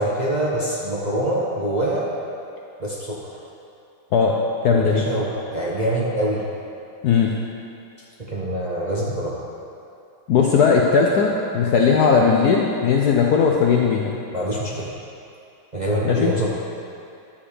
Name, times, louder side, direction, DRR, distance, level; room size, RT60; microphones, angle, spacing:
voice 1, 0.0-2.1 2.8-3.2 4.7-6.4 8.2-9.4 14.3-14.9 15.7-16.5, right 1 dB, 30° right, -6 dB, 0.9 m, -24 dB
voice 2, 4.6-5.0 7.0-7.3 10.3-14.1 16.0-16.3, left 5 dB, 65° left, -1 dB, 1.0 m, -18 dB
10.5 x 7.2 x 5.0 m, 2.7 s
omnidirectional pair, 2.2 m